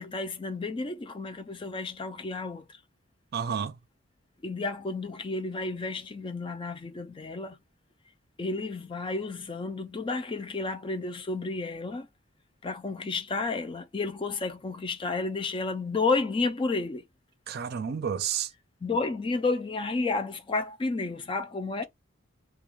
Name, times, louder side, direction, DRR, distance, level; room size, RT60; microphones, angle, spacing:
voice 1, 0.0-2.8 4.4-7.6 8.4-12.1 12.6-17.0 18.8-21.9, left 3 dB, 25° left, 0.3 m, -31 dB
voice 2, 3.3-3.7 17.5-18.5, right 7 dB, 50° right, 0.4 m, -30 dB
2.4 x 2.2 x 3.0 m
head